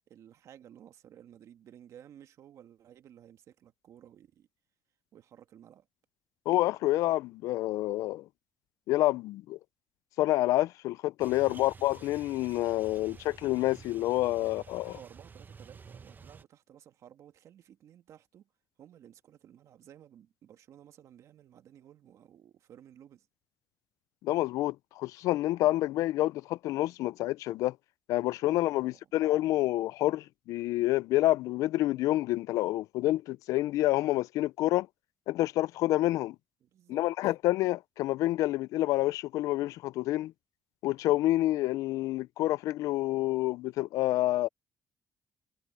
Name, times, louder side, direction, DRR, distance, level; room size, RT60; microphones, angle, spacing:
voice 1, 0.1-4.5 5.1-5.9 11.5-11.7 14.4-18.5 18.8-23.3 28.7-29.1 36.6-37.0, right 10 dB, 65° right, 1.9 m, -55 dB
voice 2, 6.5-8.3 8.9-9.6 10.2-14.9 24.2-27.8 28.1-34.9 35.3-36.4 36.9-40.3 40.8-44.5, left 16 dB, 80° left, 0.4 m, -28 dB
sound 1, 11.2-16.4, right 5 dB, 35° right, 1.1 m, -51 dB
supercardioid pair, 75°, 6 cm